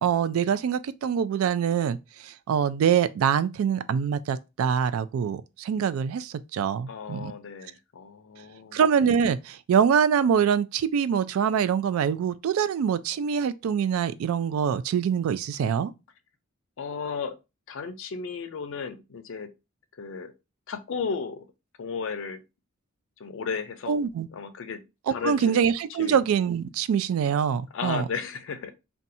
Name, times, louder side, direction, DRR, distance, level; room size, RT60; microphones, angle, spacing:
voice 1, 0.0-2.0 2.2-7.3 8.7-15.9 23.9-24.3 25.1-28.0, right 7 dB, 80° right, 0.3 m, -24 dB
voice 2, 6.9-8.8 16.8-17.4 17.7-19.5 19.9-20.3 20.7-21.4 21.8-22.4 23.2-24.0 24.3-25.6 26.0-26.2 27.7-28.7, left 5 dB, 65° left, 0.4 m, -34 dB
2.6 x 2.3 x 4.0 m
head